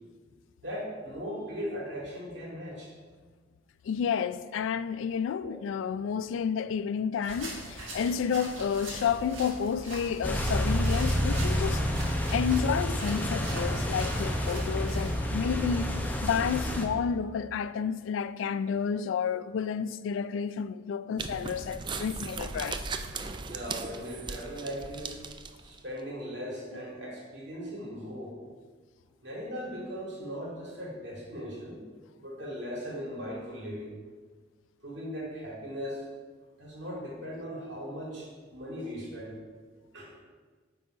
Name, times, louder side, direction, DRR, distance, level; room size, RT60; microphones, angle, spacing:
voice 1, 0.6-2.9 5.4-5.5 23.4-25.2 25.6-28.3 29.2-31.8 32.2-33.9 34.8-36.1 36.6-39.4 39.9-40.1, equal, 65° right, 2.3 m, -38 dB
voice 2, 3.8-11.8 12.3-15.9 16.2-22.8 26.7-26.8, left 7 dB, 80° left, 0.3 m, -30 dB
sound 1, 7.2-15.1, right 1 dB, 85° right, 1.7 m, -42 dB
sound 2, 10.2-16.9, equal, 10° left, 0.6 m, -29 dB
sound 3, 21.2-25.8, right 4 dB, 25° right, 0.3 m, -38 dB
8.4 x 4.0 x 4.7 m
head